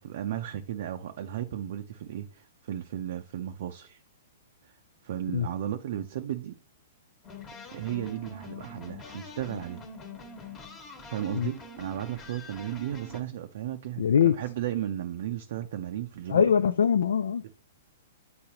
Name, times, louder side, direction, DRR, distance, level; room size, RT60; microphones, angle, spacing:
voice 1, 0.0-4.0 5.0-6.6 7.7-9.8 11.1-16.4 17.4-17.5, right 11 dB, 60° right, 0.5 m, -35 dB
sound 1, 7.2-13.2, left 3 dB, 25° left, 1.3 m, -44 dB
voice 2, 14.0-14.3 16.3-17.4, left 7 dB, 80° left, 0.3 m, -22 dB
8.6 x 3.9 x 2.9 m
hypercardioid pair, 140°, 0 cm